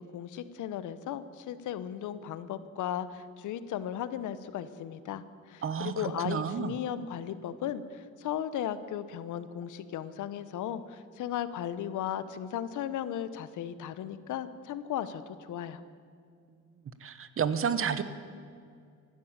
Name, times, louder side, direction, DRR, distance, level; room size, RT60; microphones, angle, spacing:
voice 1, 0.0-15.8, left 10 dB, 80° left, 14 dB, 0.9 m, -36 dB
voice 2, 5.6-6.7 17.0-18.0, right 7 dB, 45° right, 13 dB, 1.0 m, -31 dB
15.5 x 12.0 x 7.4 m, 2.3 s
cardioid pair, 90°, 30 cm